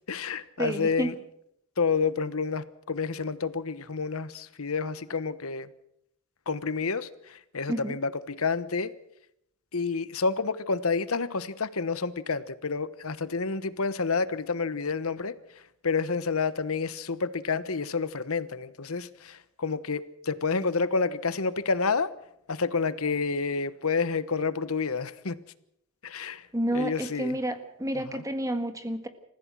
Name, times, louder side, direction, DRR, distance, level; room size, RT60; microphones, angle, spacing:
voice 1, 0.1-1.1 1.8-5.7 6.5-8.9 9.7-15.3 15.8-22.1 22.5-25.3 26.0-26.4 26.7-27.4 27.9-28.2, left 4 dB, 75° left, 15 dB, 1.1 m, -29 dB
voice 2, 0.6-1.1 7.7-8.0 26.5-29.1, right 1 dB, 15° right, 8 dB, 1.6 m, -30 dB
28.5 x 15.5 x 6.2 m, 0.77 s
head